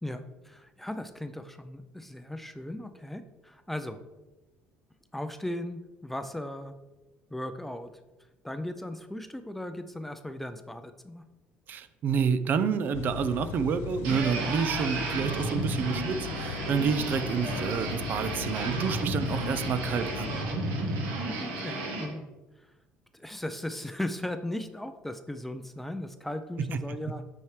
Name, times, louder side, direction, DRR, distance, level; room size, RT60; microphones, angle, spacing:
voice 1, 0.0-4.0 5.1-6.7 7.3-7.9 8.4-11.2 21.3-22.3 23.1-27.2, left 1 dB, 5° left, 9 dB, 0.5 m, -37 dB
voice 2, 11.7-20.3 26.6-27.0, right 6 dB, 50° right, 12 dB, 0.5 m, -29 dB
sound 1, 12.9-20.4, left 8 dB, 80° left, 0.4 m, -38 dB
sound 2, 14.0-22.1, right 2 dB, 85° right, 1.7 m, -33 dB
8.8 x 4.5 x 3.2 m, 1.1 s
cardioid pair, 105°, 4 cm